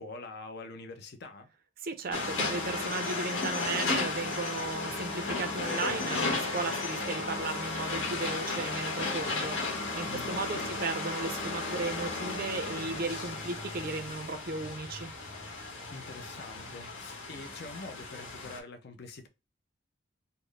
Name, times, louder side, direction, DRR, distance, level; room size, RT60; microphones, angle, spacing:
voice 1, 0.0-1.5 10.1-10.8 15.9-19.3, left 3 dB, 55° left, 0.6 m, -45 dB
voice 2, 1.8-9.6 9.9-15.1, right 3 dB, 45° right, 0.5 m, -35 dB
sound 1, 2.1-18.6, left 3 dB, 90° left, 1.3 m, -34 dB
4.2 x 2.1 x 3.2 m
head